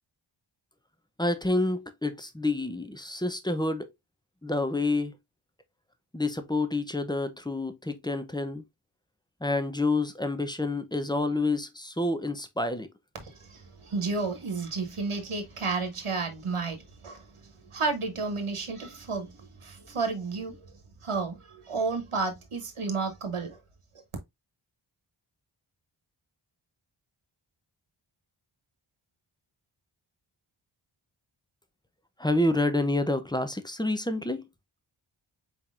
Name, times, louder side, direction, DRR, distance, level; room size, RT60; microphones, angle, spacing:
voice 1, 1.2-3.9 4.4-5.2 6.1-8.6 9.4-12.9 32.2-34.5, left 2 dB, 10° left, 0.6 m, -28 dB
voice 2, 13.2-17.2 17.7-19.3 19.6-20.5 21.0-23.6, right 4 dB, 85° right, 1.2 m, -31 dB
4.4 x 3.7 x 2.4 m
wide cardioid pair, 45°, 49 cm